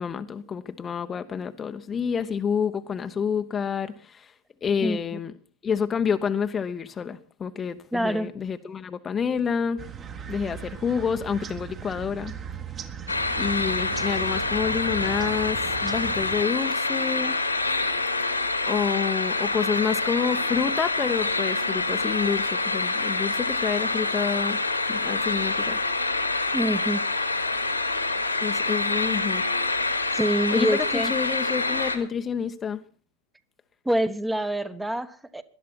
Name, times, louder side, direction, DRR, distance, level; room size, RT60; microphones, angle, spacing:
voice 1, 0.0-4.3 4.6-5.3 5.6-9.8 10.3-12.3 13.4-17.4 18.6-24.6 24.9-25.8 28.4-29.5 30.5-32.8, left 6 dB, 20° left, 0.9 m, -28 dB
voice 2, 4.8-5.2 7.9-8.3 26.5-27.1 30.1-31.1 33.8-35.4, equal, 5° right, 1.1 m, -26 dB
sound 1, 9.8-16.4, right 7 dB, 25° right, 1.5 m, -38 dB
sound 2, 13.1-32.0, left 3 dB, 85° left, 2.4 m, -26 dB
19.0 x 12.5 x 5.8 m
figure-of-eight pair, 90°, 0 cm